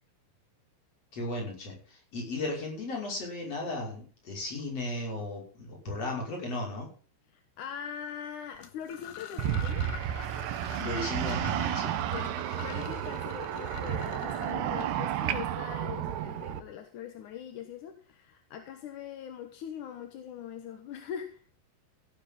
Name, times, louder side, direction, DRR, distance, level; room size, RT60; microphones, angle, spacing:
voice 1, 1.1-6.9 10.7-12.0, left 2 dB, 35° left, -1 dB, 6.8 m, -35 dB
voice 2, 7.3-9.9 12.1-21.4, left 9 dB, 60° left, 6 dB, 2.4 m, -42 dB
sound 1, 8.6-15.4, left 11 dB, 80° left, 3.6 m, -46 dB
sound 2, 9.4-16.6, right 11 dB, 80° right, 3.2 m, -32 dB
16.5 x 12.0 x 3.9 m, 0.42 s
omnidirectional pair, 4.7 m